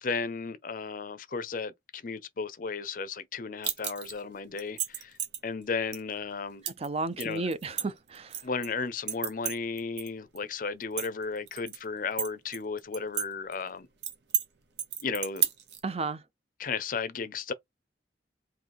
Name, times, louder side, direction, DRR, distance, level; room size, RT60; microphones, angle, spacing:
voice 1, 0.0-5.2 5.4-6.6 7.2-7.5 8.4-13.9 15.0-15.5 16.6-17.5, left 4 dB, 50° left, 0.5 m, -34 dB
sound 1, 3.6-4.2 4.6-5.4 5.9-6.0 6.7-6.9 7.2-8.7 9.1-10.1 10.4-10.5 10.8-11.8 12.2-13.3 13.5-13.6 14.0-14.5 14.8-15.8, right 8 dB, 80° right, 0.8 m, -32 dB
voice 2, 6.8-8.3 15.8-16.2, right 3 dB, 35° right, 0.5 m, -32 dB
3.8 x 2.7 x 3.5 m
head